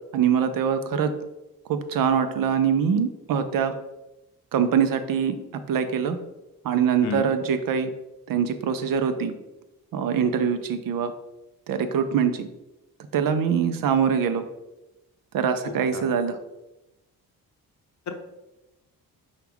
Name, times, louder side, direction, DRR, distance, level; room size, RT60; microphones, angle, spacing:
voice 1, 0.1-1.1 1.7-3.7 4.5-5.4 5.7-6.2 6.6-7.9 8.3-9.3 9.9-11.1 11.7-12.5 13.1-14.4 15.3-16.4, right 7 dB, 65° right, 9 dB, 0.5 m, -23 dB
voice 2, 15.6-16.0 18.1-18.2, left 7 dB, 50° left, 6 dB, 0.6 m, -31 dB
5.7 x 2.4 x 3.5 m, 0.97 s
cardioid pair, 80°, 37 cm